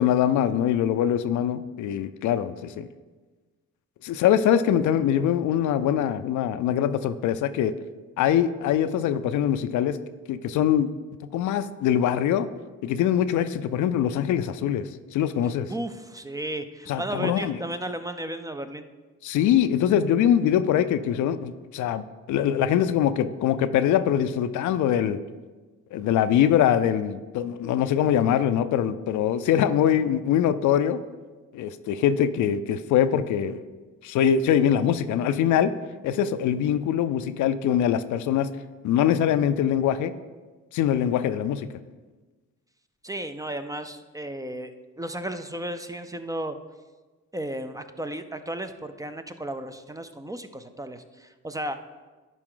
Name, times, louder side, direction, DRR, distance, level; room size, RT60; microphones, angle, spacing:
voice 1, 0.0-2.9 4.0-7.7 8.2-10.0 10.3-10.9 11.3-12.5 12.8-15.7 16.9-17.6 19.2-22.0 22.3-25.2 25.9-31.0 31.5-33.6 34.0-35.7 36.0-38.5 38.8-40.1 40.7-41.7, left 9 dB, 75° left, 12 dB, 0.5 m, -23 dB
voice 2, 15.7-18.9 43.0-44.7 45.0-46.6 47.3-51.8, right 1 dB, 10° right, 9 dB, 0.4 m, -34 dB
11.0 x 4.9 x 3.8 m, 1.3 s
cardioid pair, 90°, 30 cm